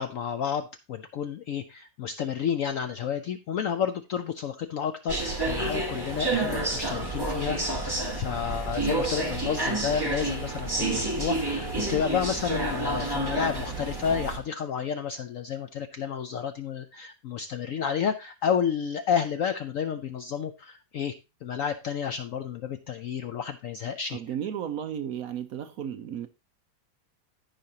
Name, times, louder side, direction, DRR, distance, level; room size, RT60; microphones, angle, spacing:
voice 1, 0.0-21.1 21.4-24.4, left 7 dB, 75° left, 0.7 m, -31 dB
sound 1, 5.1-14.4, right 2 dB, 15° right, 1.6 m, -29 dB
voice 2, 24.1-26.3, right 9 dB, 65° right, 0.9 m, -34 dB
14.5 x 5.1 x 2.8 m
omnidirectional pair, 1.9 m